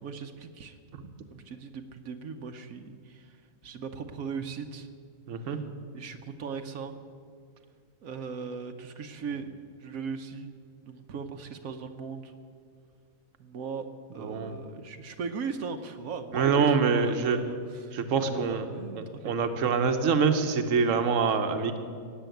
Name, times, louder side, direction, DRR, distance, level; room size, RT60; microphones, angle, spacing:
voice 1, 0.0-0.8 1.3-4.9 5.4-5.6 5.9-6.9 8.0-9.5 9.8-10.6 10.8-12.3 13.4-19.4, right 5 dB, 90° right, 6 dB, 1.3 m, -38 dB
voice 2, 5.3-5.6 14.2-14.5 16.3-17.4 17.9-18.7 19.0-21.8, right 5 dB, 65° right, 7 dB, 1.3 m, -25 dB
17.5 x 7.5 x 9.1 m, 2.2 s
omnidirectional pair, 1.4 m